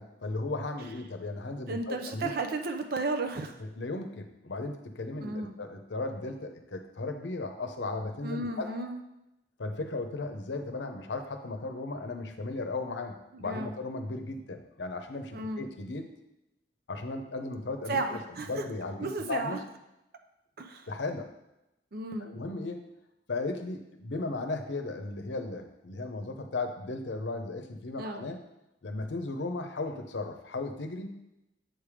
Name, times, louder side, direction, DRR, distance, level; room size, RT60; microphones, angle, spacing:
voice 1, 0.0-2.3 3.6-8.7 9.6-16.0 16.9-18.2 18.5-19.6 20.9-21.3 22.2-22.9 23.3-28.4 28.8-31.1, left 2 dB, 90° left, 6 dB, 0.7 m, -36 dB
voice 2, 1.7-3.6 5.2-5.5 8.2-9.0 13.3-13.8 15.3-15.7 17.9-18.6 19.0-19.6 20.6-20.9 21.9-22.3 28.0-28.3, right 2 dB, 60° right, 6 dB, 0.5 m, -34 dB
7.8 x 3.4 x 4.9 m, 0.89 s
head